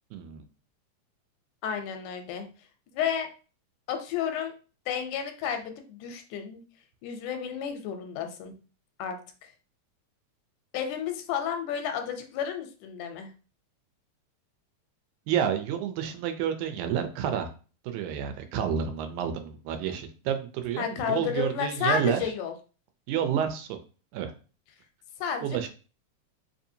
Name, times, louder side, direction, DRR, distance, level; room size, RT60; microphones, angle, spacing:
voice 1, 0.1-0.5 15.3-17.5 17.8-22.2 23.1-23.8 24.1-24.3 25.4-25.7, right 9 dB, 85° right, 7 dB, 2.1 m, -29 dB
voice 2, 1.6-2.5 2.9-3.3 3.9-4.5 4.9-6.6 7.0-8.5 9.0-9.5 10.7-13.3 20.8-22.5 25.2-25.7, left 8 dB, 85° left, 6 dB, 2.1 m, -31 dB
4.8 x 2.7 x 2.7 m, 0.36 s
omnidirectional pair, 3.4 m